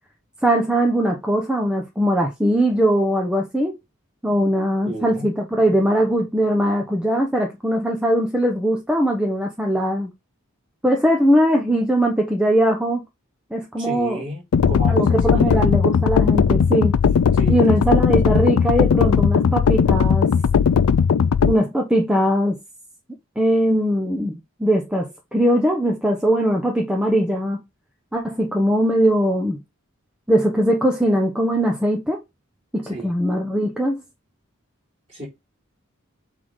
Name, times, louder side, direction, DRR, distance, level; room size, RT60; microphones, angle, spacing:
voice 1, 0.4-3.8 4.2-10.1 10.8-13.0 13.5-14.2 14.9-16.9 17.5-20.3 21.4-22.6 23.4-27.6 28.1-29.6 30.3-32.2 32.7-34.0, equal, 5° right, 1.0 m, -20 dB
voice 2, 4.9-5.3 13.8-15.6 17.3-18.5 32.8-33.1 35.1-35.3, equal, 25° right, 4.0 m, -33 dB
sound 1, 14.5-21.5, left 6 dB, 85° left, 0.4 m, -17 dB
8.4 x 3.7 x 4.0 m
head